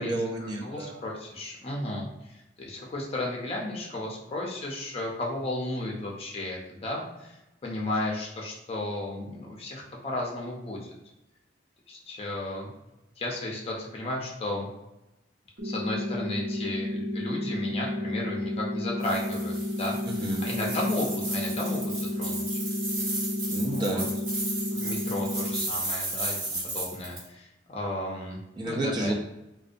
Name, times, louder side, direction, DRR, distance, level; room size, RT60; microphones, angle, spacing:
voice 1, 0.0-1.0 20.1-20.4 23.5-24.1 28.6-29.1, right 1 dB, 25° right, 0 dB, 0.4 m, -30 dB
voice 2, 0.6-2.1 2.6-7.3 7.6-10.9 11.9-12.7 13.2-14.7 15.6-20.0 20.4-22.6 23.6-24.0 24.7-29.1, left 1 dB, 30° left, -2 dB, 0.5 m, -34 dB
sound 1, 15.6-25.6, left 1 dB, 60° right, 0.8 m, -31 dB
sound 2, 19.0-27.3, right 2 dB, 85° right, 0.9 m, -34 dB
2.6 x 2.1 x 2.5 m, 0.92 s
head